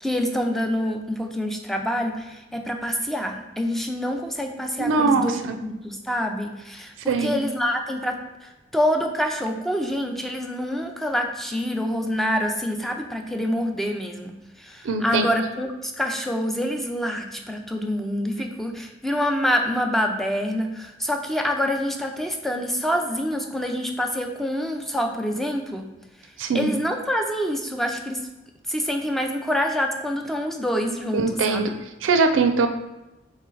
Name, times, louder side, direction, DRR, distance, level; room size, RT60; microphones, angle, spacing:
voice 1, 0.0-8.2 8.7-14.3 14.6-25.8 26.5-28.2 28.7-31.6, equal, ahead, 3 dB, 0.4 m, -26 dB
voice 2, 4.8-5.6 7.1-7.4 14.8-15.3 26.4-26.7 31.1-31.7 32.0-32.7, right 4 dB, 85° right, 7 dB, 0.4 m, -21 dB
4.3 x 3.2 x 3.8 m, 0.98 s
head